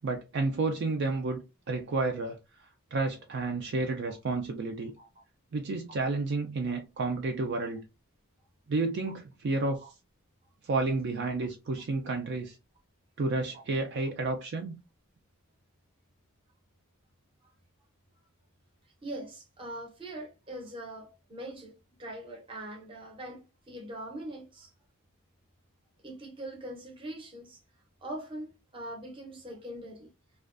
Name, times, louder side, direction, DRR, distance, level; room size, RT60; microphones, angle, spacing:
voice 1, 0.0-1.4 1.7-2.4 2.9-4.9 5.5-7.8 8.7-9.8 10.6-12.5 13.2-14.8, right 3 dB, 55° right, 0.4 m, -31 dB
voice 2, 19.0-24.7 26.0-27.6 28.0-30.1, right 1 dB, 25° right, 0.7 m, -42 dB
2.4 x 2.2 x 2.3 m
head